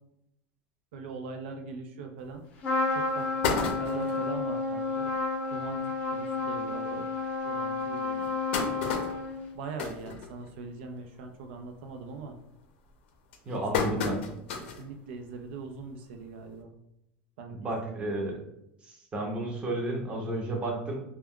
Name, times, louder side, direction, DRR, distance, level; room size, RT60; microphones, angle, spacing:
voice 1, 0.9-2.4 2.9-5.1 5.5-7.1 7.4-8.3 9.5-12.4 13.5-16.8 17.4-17.7 18.1-18.4, right 4 dB, 85° right, 4 dB, 0.4 m, -42 dB
sound 1, 2.3-2.4 2.9-3.0 3.2-4.3 4.8-4.9 5.2-5.3 5.6-5.8 6.5-6.6 7.1-7.2 8.0-10.8 11.2-11.5 11.9-12.3 12.9-14.9 15.3-15.4 16.6-16.7, left 4 dB, 90° left, 0.5 m, -32 dB
Trumpet, 2.6-9.5, left 3 dB, 30° left, 0.6 m, -31 dB
voice 2, 13.5-14.2 17.6-18.4 18.9-21.0, right 1 dB, 20° right, 0 dB, 0.6 m, -32 dB
2.2 x 2.2 x 3.5 m, 0.82 s
supercardioid pair, 160°, 6 cm